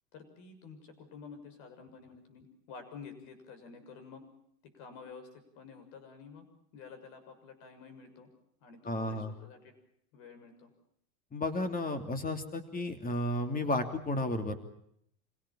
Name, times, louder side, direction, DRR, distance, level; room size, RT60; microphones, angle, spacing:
voice 1, 0.1-4.2 4.7-6.4 6.7-8.3 8.6-9.7 10.1-10.7, left 5 dB, 60° left, 8 dB, 6.7 m, -50 dB
voice 2, 8.8-9.3 11.3-14.6, left 1 dB, 20° left, 7 dB, 3.0 m, -33 dB
26.5 x 17.5 x 8.9 m, 0.71 s
supercardioid pair, 115°, 46 cm